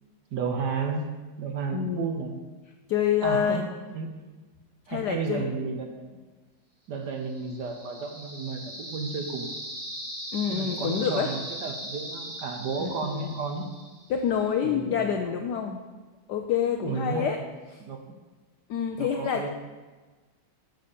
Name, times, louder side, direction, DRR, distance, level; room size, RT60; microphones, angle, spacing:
voice 1, 0.3-1.1 1.4-2.3 3.2-3.7 3.9-4.1 4.9-6.2 6.9-9.5 10.5-13.7 14.6-15.4 16.8-17.5 17.8-18.0 19.0-19.5, right 5 dB, 65° right, 4 dB, 1.2 m, -32 dB
voice 2, 1.7-2.2 2.9-3.6 4.9-5.5 10.3-11.3 12.8-13.3 14.1-15.8 16.3-17.4 17.7-17.8 18.7-19.5, left 8 dB, 90° left, 4 dB, 0.9 m, -27 dB
sound 1, 7.2-14.2, equal, 30° right, 1.5 m, -39 dB
7.5 x 5.6 x 6.8 m, 1.3 s
omnidirectional pair, 2.4 m